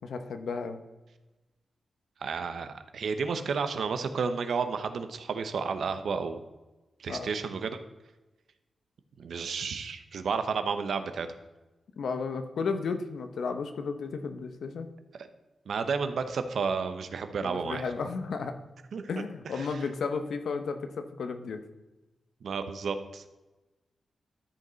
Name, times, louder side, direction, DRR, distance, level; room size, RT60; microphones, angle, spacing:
voice 1, 0.0-0.8 7.1-7.3 12.0-14.9 17.4-18.6 19.1-21.6, left 5 dB, 85° left, 8 dB, 0.9 m, -33 dB
voice 2, 2.2-6.4 7.0-7.8 9.2-11.3 15.2-15.3 15.7-17.9 18.9-19.1 19.5-19.8 22.4-23.3, right 5 dB, 75° right, 9 dB, 0.8 m, -32 dB
13.0 x 5.5 x 4.0 m, 1.1 s
wide cardioid pair, 125°, 0 cm